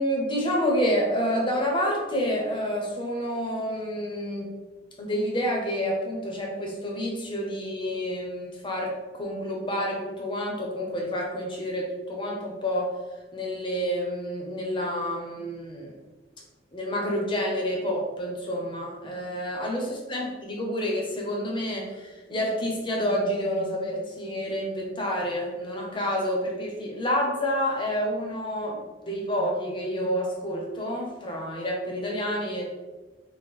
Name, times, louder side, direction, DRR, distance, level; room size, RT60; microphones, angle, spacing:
voice 1, 0.0-4.5 5.0-13.0 13.3-16.0 16.7-32.7, equal, 25° left, -1 dB, 0.8 m, -29 dB
4.4 x 2.2 x 3.6 m, 1.2 s
head